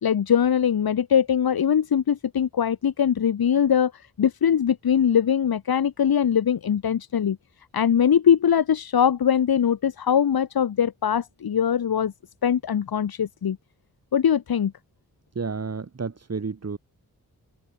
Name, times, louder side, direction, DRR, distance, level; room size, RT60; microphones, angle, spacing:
voice 1, 0.0-3.9 4.2-7.4 7.7-12.1 12.4-13.6 14.1-14.7, left 8 dB, 80° left, 1.6 m, -21 dB
voice 2, 15.4-16.8, right 5 dB, 45° right, 3.6 m, -31 dB
wide cardioid pair, 120°, 36 cm